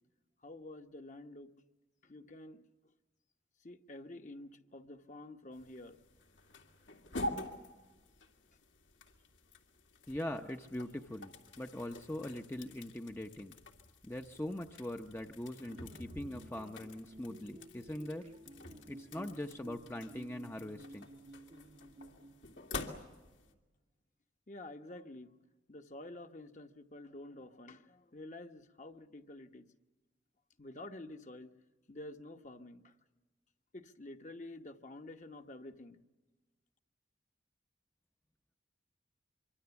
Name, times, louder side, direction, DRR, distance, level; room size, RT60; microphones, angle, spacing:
voice 1, 0.4-1.5 2.0-2.7 3.6-6.0 24.5-25.3 25.7-29.7 30.6-31.5 31.9-32.9 33.7-36.0, left 2 dB, 40° left, 6 dB, 1.1 m, -49 dB
sound 1, 5.5-23.5, left 2 dB, 80° left, 2.6 m, -48 dB
voice 2, 10.1-13.6 14.0-18.3 18.9-21.0, left 1 dB, 10° left, 5 dB, 0.7 m, -42 dB
sound 2, 15.6-22.7, right 1 dB, 35° right, 0.7 m, -54 dB
25.0 x 24.5 x 7.0 m, 1.2 s
head